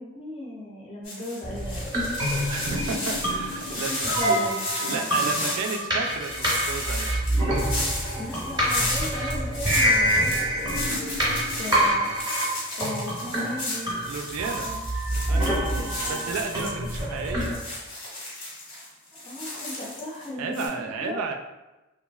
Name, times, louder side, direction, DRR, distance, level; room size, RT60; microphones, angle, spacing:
voice 1, 0.0-1.8 3.7-3.8 4.1-5.1 8.1-12.1 12.8-13.9 14.6-14.7 15.3-16.3 18.7-21.2, left 1 dB, 25° left, -3 dB, 0.5 m, -37 dB
sound 1, 1.0-20.3 20.5-20.7, left 1 dB, 90° left, 1.3 m, -34 dB
sound 2, 1.4-17.6, right 1 dB, 20° right, 0.7 m, -26 dB
voice 2, 2.5-4.4 4.8-7.2 14.1-14.7 15.2-15.7 16.1-17.6 20.4-21.4, right 4 dB, 80° right, 5 dB, 0.3 m, -33 dB
sound 3, 7.4-11.0, left 1 dB, 70° left, 0.6 m, -42 dB
2.9 x 2.4 x 2.3 m, 1.0 s
head